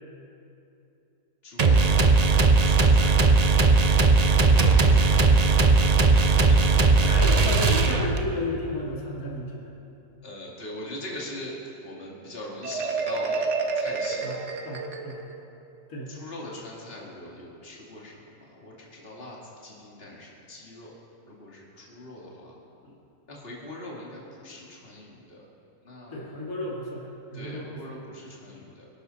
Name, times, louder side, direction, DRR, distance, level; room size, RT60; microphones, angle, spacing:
voice 1, 1.4-1.9 2.7-3.1 4.4-6.6 6.8-7.1 10.2-11.5 11.8-13.5 13.7-14.4 16.1-20.9 21.2-22.6 23.3-25.4 25.8-26.3 27.3-28.9, left 1 dB, 40° left, -3 dB, 2.5 m, -41 dB
sound 1, 1.6-8.3, right 3 dB, 40° right, 0.6 m, -18 dB
voice 2, 7.0-9.7 14.2-15.2 15.9-16.1 22.8-22.9 26.1-28.0, left 1 dB, 75° left, -4 dB, 2.6 m, -33 dB
Marimba xylophone, 12.6-15.4, right 4 dB, 55° right, 1.4 m, -29 dB
25.0 x 11.5 x 4.1 m, 2.7 s
omnidirectional pair, 1.5 m